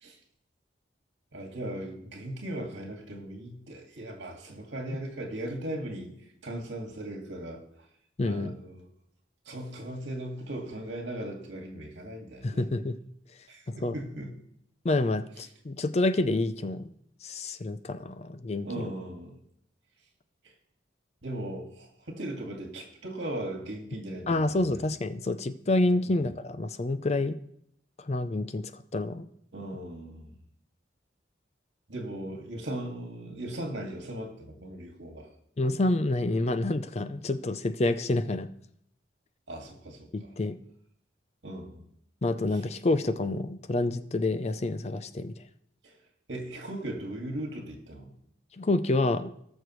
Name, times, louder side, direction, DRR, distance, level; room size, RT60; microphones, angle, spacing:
voice 1, 1.3-6.1 6.4-7.6 8.2-8.9 9.5-12.6 13.5-14.4 18.6-19.4 21.2-24.9 26.0-26.3 29.5-30.4 31.9-35.3 39.5-40.1 41.4-41.9 45.8-46.0 46.3-48.1, right 1 dB, 75° right, 1 dB, 2.0 m, -38 dB
voice 2, 8.2-8.6 12.4-13.0 13.7-13.9 14.8-16.9 17.2-18.9 24.3-27.4 28.0-29.3 35.6-38.5 40.1-40.6 42.2-45.3 48.6-49.3, left 2 dB, 35° left, 11 dB, 0.5 m, -28 dB
19.0 x 6.5 x 3.1 m, 0.72 s
head